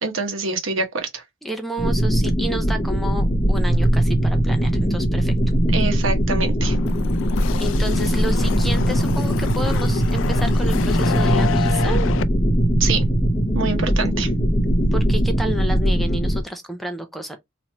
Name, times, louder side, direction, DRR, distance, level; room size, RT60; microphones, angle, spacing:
voice 1, 0.0-1.2 5.7-6.8 12.8-13.0 13.5-14.3, right 4 dB, 75° right, 1.0 m, -25 dB
voice 2, 1.4-5.3 7.6-12.1 14.9-17.4, right 1 dB, ahead, 0.4 m, -30 dB
sound 1, 1.8-16.4, equal, 25° left, 0.8 m, -20 dB
sound 2, 6.6-12.2, left 7 dB, 70° left, 0.3 m, -28 dB
3.0 x 2.6 x 4.2 m
head